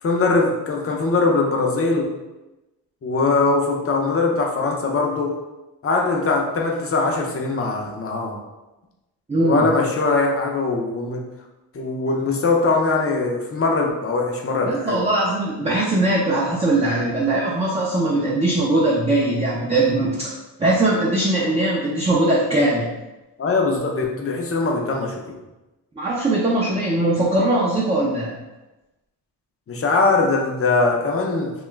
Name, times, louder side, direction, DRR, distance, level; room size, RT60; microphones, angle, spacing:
voice 1, 0.0-2.1 3.0-5.4 5.8-8.4 9.4-11.2 11.7-15.0 23.4-25.2 29.7-31.5, left 3 dB, 35° left, 0 dB, 0.5 m, -21 dB
voice 2, 9.3-9.7 14.6-20.3 20.6-22.9 26.0-28.4, right 2 dB, 15° right, -6 dB, 0.5 m, -20 dB
2.9 x 2.3 x 3.1 m, 1.0 s
cardioid pair, 105°, 41 cm